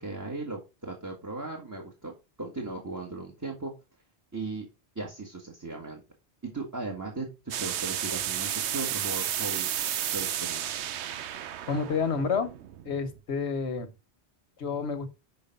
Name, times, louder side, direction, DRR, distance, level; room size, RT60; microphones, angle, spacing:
voice 1, 0.0-2.1 2.4-3.7 4.3-4.6 4.9-6.0 6.4-7.3 7.6-9.7 10.1-10.6, right 3 dB, 15° right, 1.5 m, -37 dB
sound 1, 7.5-13.2, right 10 dB, 90° right, 1.0 m, -32 dB
voice 2, 11.7-12.5 12.8-13.9 14.6-15.1, left 5 dB, 85° left, 1.5 m, -29 dB
6.8 x 5.1 x 5.3 m
omnidirectional pair, 1.1 m